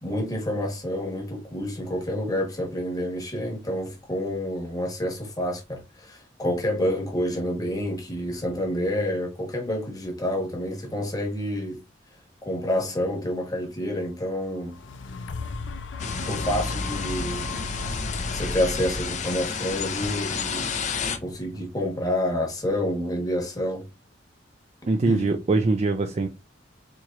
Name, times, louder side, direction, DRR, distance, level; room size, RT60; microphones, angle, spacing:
voice 1, 0.0-11.8 12.4-14.8 16.3-17.5 18.3-20.7 21.1-23.8 25.1-25.3, left 1 dB, 20° left, 1.2 m, -28 dB
sound 1, 14.5-22.5 23.1-23.2, left 2 dB, 85° left, 0.4 m, -36 dB
sound 2, 16.0-21.2, left 5 dB, 40° left, 0.6 m, -31 dB
voice 2, 24.9-26.3, right 3 dB, 35° right, 0.3 m, -22 dB
4.3 x 3.0 x 2.4 m
head